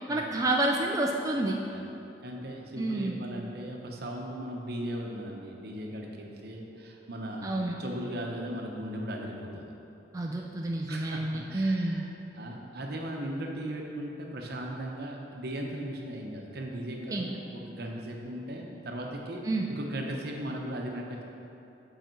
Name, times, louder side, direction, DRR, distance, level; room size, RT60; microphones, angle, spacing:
voice 1, 0.1-1.6 2.8-3.2 7.4-7.8 10.1-12.1 17.1-17.4 19.4-19.7, right 2 dB, 20° right, 0 dB, 0.4 m, -29 dB
voice 2, 2.2-7.5 7.8-9.7 10.9-11.2 11.5-12.0 12.3-19.4 19.7-21.2, right 1 dB, 65° right, 0 dB, 0.9 m, -37 dB
7.8 x 5.0 x 4.5 m, 2.9 s
head